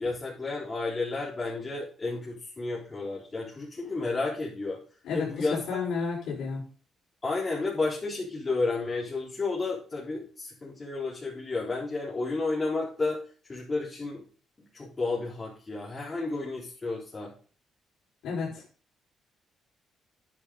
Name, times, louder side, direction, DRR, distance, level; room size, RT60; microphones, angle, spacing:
voice 1, 0.0-4.8 5.1-5.6 7.2-13.2 13.5-14.2 14.7-17.3, left 3 dB, 30° left, -5 dB, 4.2 m, -31 dB
voice 2, 5.0-6.6 18.2-18.5, left 5 dB, 80° left, -4 dB, 4.9 m, -31 dB
10.0 x 8.7 x 4.0 m, 0.39 s
cardioid pair, 90°, 0 cm